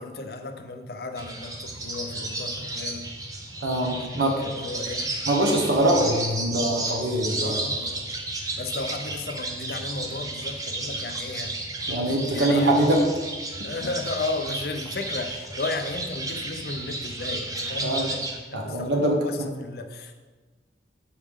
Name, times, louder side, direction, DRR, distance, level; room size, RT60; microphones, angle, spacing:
voice 1, 0.0-3.1 4.0-4.1 4.4-5.1 7.4-8.1 8.6-11.6 12.3-12.8 13.6-20.1, left 3 dB, 55° left, 6 dB, 0.5 m, -34 dB
sound 1, 1.2-18.4, right 2 dB, 20° right, 0.5 m, -33 dB
voice 2, 3.6-4.5 5.3-7.5 11.9-13.0 17.8-18.1 18.5-19.5, right 1 dB, 80° right, 0 dB, 1.1 m, -23 dB
7.2 x 4.8 x 3.6 m, 1.3 s
head